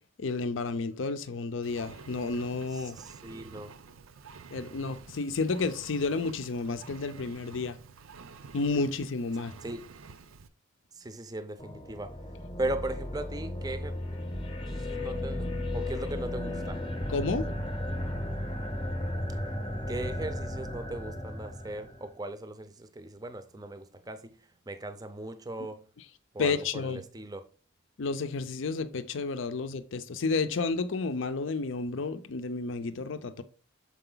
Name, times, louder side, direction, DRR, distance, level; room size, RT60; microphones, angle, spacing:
voice 1, 0.2-3.0 4.5-7.8 8.5-9.5 17.1-17.5 26.4-27.0 28.0-33.4, left 4 dB, 70° left, 0.5 m, -31 dB
Engine, 1.6-10.5, right 5 dB, 90° right, 0.6 m, -49 dB
voice 2, 2.7-3.7 9.6-9.8 11.0-12.1 12.6-13.9 14.6-15.5 15.7-16.8 19.9-24.4 24.7-25.8 26.3-27.5, right 2 dB, 20° right, 0.5 m, -38 dB
sound 1, 11.6-22.1, left 1 dB, 25° left, 0.8 m, -35 dB
6.7 x 4.8 x 3.8 m
head